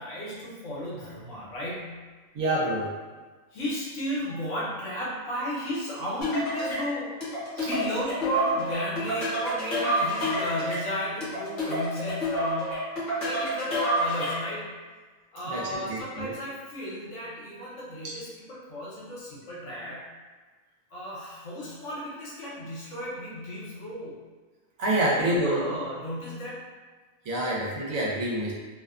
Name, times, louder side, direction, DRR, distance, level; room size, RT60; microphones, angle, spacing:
voice 1, 0.0-2.0 3.5-7.1 7.6-12.8 13.2-14.7 15.3-20.1 20.9-24.2 25.0-26.6, equal, 65° left, -6 dB, 1.1 m, -34 dB
voice 2, 2.3-2.9 7.6-7.7 15.5-16.3 24.8-25.6 27.3-28.5, right 1 dB, 80° right, -4 dB, 1.1 m, -27 dB
sound 1, 6.2-14.6, equal, 40° left, 0.8 m, -29 dB
2.6 x 2.1 x 2.3 m, 1.4 s
omnidirectional pair, 1.4 m